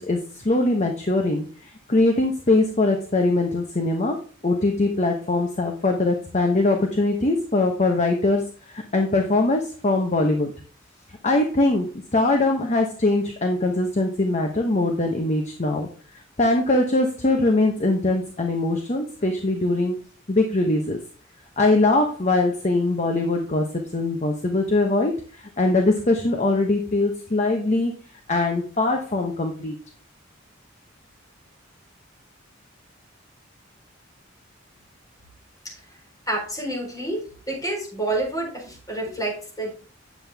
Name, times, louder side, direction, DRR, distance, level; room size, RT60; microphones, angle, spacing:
voice 1, 0.0-1.4 1.9-4.2 4.4-8.4 8.7-10.5 11.2-11.9 12.1-15.9 16.4-20.0 20.3-21.0 21.6-23.7 23.9-27.9 28.3-29.8, left 2 dB, 35° left, 3 dB, 1.0 m, -22 dB
voice 2, 36.3-37.2 37.5-39.7, right 2 dB, 20° left, -2 dB, 4.0 m, -28 dB
9.3 x 7.4 x 3.5 m, 0.39 s
head